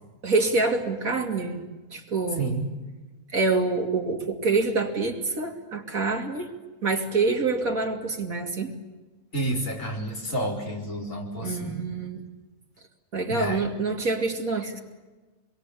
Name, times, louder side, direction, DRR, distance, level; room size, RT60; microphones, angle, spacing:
voice 1, 0.2-2.4 3.3-6.5 6.8-8.7 11.4-12.2 13.1-14.8, right 3 dB, 70° right, 2 dB, 3.2 m, -26 dB
voice 2, 2.4-2.7 9.3-11.9 13.3-13.7, right 1 dB, 60° left, -1 dB, 5.1 m, -30 dB
26.5 x 22.5 x 8.5 m, 1.2 s
omnidirectional pair, 1.5 m